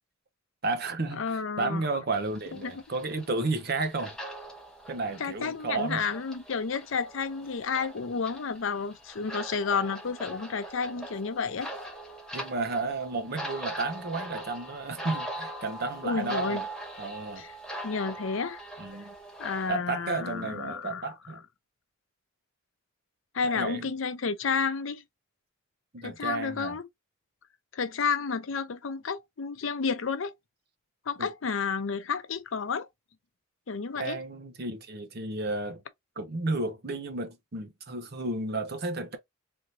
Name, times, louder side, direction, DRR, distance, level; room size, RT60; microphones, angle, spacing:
voice 1, 0.6-4.2 4.9-6.0 12.3-16.6 17.0-17.4 18.8-19.1 19.7-21.4 23.4-23.9 25.9-26.8 31.2-31.3 33.9-35.8 36.2-39.2, right 3 dB, 50° right, 0.8 m, -32 dB
voice 2, 1.2-1.8 2.5-2.8 5.2-11.7 16.0-16.6 17.4-17.5 17.8-18.6 19.4-21.1 23.3-25.0 26.0-26.8 27.7-30.3 31.1-32.9 33.7-34.2, left 5 dB, 75° left, 0.6 m, -31 dB
sound 1, 2.1-19.7, right 1 dB, 5° left, 1.0 m, -42 dB
3.5 x 2.9 x 2.7 m
head